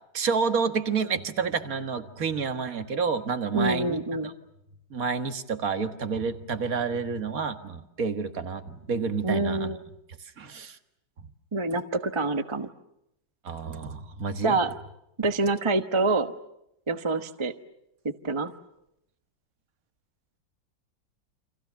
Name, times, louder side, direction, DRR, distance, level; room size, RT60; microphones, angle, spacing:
voice 1, 0.1-4.3 4.9-9.7 10.4-10.8 13.4-14.6, right 5 dB, 50° right, 8 dB, 2.0 m, -29 dB
voice 2, 3.5-4.3 9.2-9.8 11.5-12.7 14.4-14.7 15.2-16.3 16.9-17.5 18.0-18.5, right 3 dB, 20° right, 9 dB, 0.8 m, -26 dB
29.5 x 26.5 x 7.1 m, 0.82 s
omnidirectional pair, 1.9 m